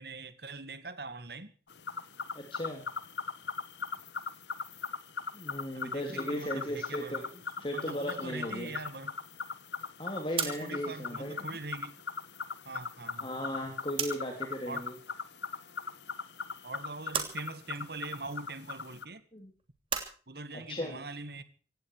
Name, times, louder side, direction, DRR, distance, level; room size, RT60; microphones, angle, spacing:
voice 1, 0.0-1.5 5.8-7.2 7.6-9.1 10.4-12.0 12.7-13.3 14.7-14.9 16.6-19.2 20.3-21.4, right 3 dB, 65° right, 1.9 m, -42 dB
sound 1, 1.7-19.0, left 5 dB, 80° left, 1.1 m, -40 dB
voice 2, 2.3-2.8 5.3-8.7 10.0-11.6 13.2-14.9 19.3-19.5 20.5-21.0, equal, 30° left, 3.2 m, -37 dB
sound 2, 10.3-14.4 14.7-15.8 16.1-20.1, right 7 dB, 30° right, 3.0 m, -39 dB
18.0 x 16.5 x 4.8 m
head